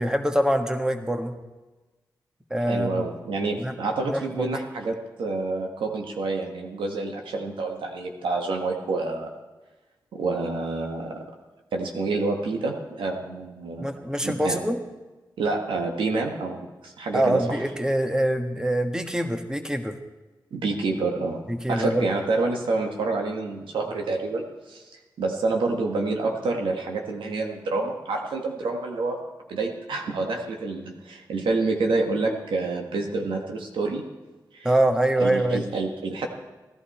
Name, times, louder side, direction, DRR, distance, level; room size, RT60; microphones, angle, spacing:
voice 1, 0.0-1.3 2.5-3.1 3.6-3.7 4.1-4.5 13.8-14.8 17.1-20.0 21.5-22.1 34.6-35.6, right 1 dB, 10° right, 6 dB, 1.4 m, -24 dB
voice 2, 2.7-9.3 10.1-11.3 11.7-13.9 14.2-14.6 15.4-17.6 20.5-21.4 21.7-24.8 25.2-29.2 29.5-34.0 34.5-34.7 35.2-36.3, right 3 dB, 90° right, 2 dB, 1.5 m, -28 dB
15.5 x 11.5 x 4.4 m, 1.2 s
cardioid pair, 50°, 8 cm